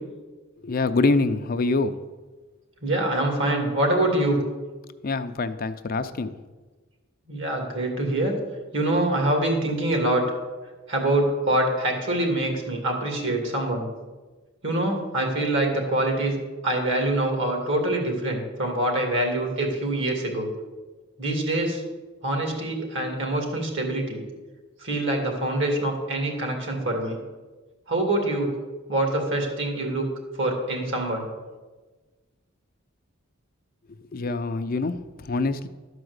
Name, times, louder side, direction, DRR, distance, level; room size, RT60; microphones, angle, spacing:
voice 1, 0.6-1.9 5.0-6.4 33.9-35.7, left 3 dB, 45° left, 9 dB, 0.5 m, -25 dB
voice 2, 2.8-4.4 7.3-8.3 8.7-10.3 10.9-13.9 14.6-16.4 16.6-20.5 21.2-21.8 22.2-24.2 24.8-27.2 27.9-28.5 28.9-30.1 30.4-31.3, right 1 dB, 65° right, 2 dB, 2.5 m, -25 dB
12.5 x 4.9 x 8.0 m, 1.3 s
head